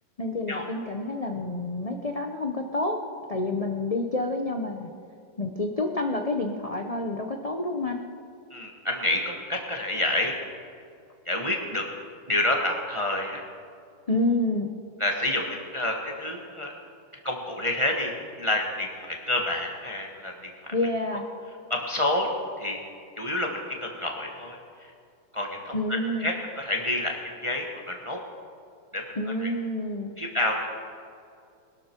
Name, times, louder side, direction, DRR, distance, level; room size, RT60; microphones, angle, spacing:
voice 1, 0.2-3.0 3.3-4.9 5.4-8.0 14.1-14.7 20.7-21.3 25.7-26.3 29.1-30.2, left 2 dB, 65° left, 3 dB, 0.3 m, -28 dB
voice 2, 8.5-10.3 11.3-11.8 12.3-13.4 15.0-16.7 17.2-20.7 21.7-22.3 22.6-22.8 23.2-23.5 23.8-24.6 25.3-28.2 28.9-29.0 29.4-29.5 30.2-30.7, left 1 dB, 20° right, 1 dB, 1.0 m, -28 dB
20.5 x 12.5 x 4.5 m, 2.4 s
omnidirectional pair, 2.1 m